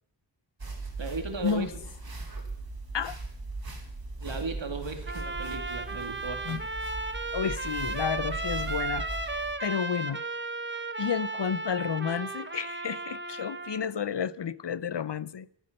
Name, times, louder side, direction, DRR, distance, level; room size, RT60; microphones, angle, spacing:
sound 1, 0.6-9.5, right 3 dB, 55° right, 3.4 m, -39 dB
voice 1, 1.0-1.8 4.2-6.7, right 4 dB, 80° right, 2.6 m, -36 dB
Trumpet, 5.1-13.8, right 3 dB, 25° right, 1.3 m, -35 dB
voice 2, 7.3-10.2 11.0-15.5, left 7 dB, 70° left, 0.7 m, -31 dB
14.5 x 14.0 x 6.7 m
wide cardioid pair, 75°, 44 cm